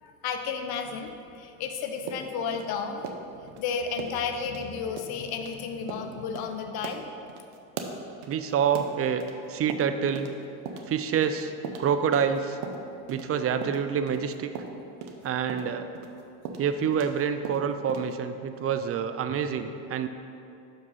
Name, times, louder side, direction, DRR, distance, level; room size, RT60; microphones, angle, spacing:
voice 1, 0.0-3.1 3.6-7.1 10.7-10.8, left 6 dB, 60° left, 6 dB, 0.8 m, -32 dB
sound 1, 2.1-3.6 4.0-4.2 4.5-4.6 5.0-5.1 5.4-5.5 5.9-6.1 6.4-6.5 6.8-9.4 9.7-10.4 10.7-13.3 13.6-17.2 17.4-18.1, right 5 dB, 80° right, 0.8 m, -39 dB
voice 2, 8.3-9.2 9.5-10.3 10.9-11.5 11.8-12.6 13.1-14.5 15.2-15.9 16.6-20.1, right 7 dB, 35° right, 9 dB, 0.5 m, -27 dB
6.0 x 5.2 x 5.5 m, 2.6 s
supercardioid pair, 90°, 42 cm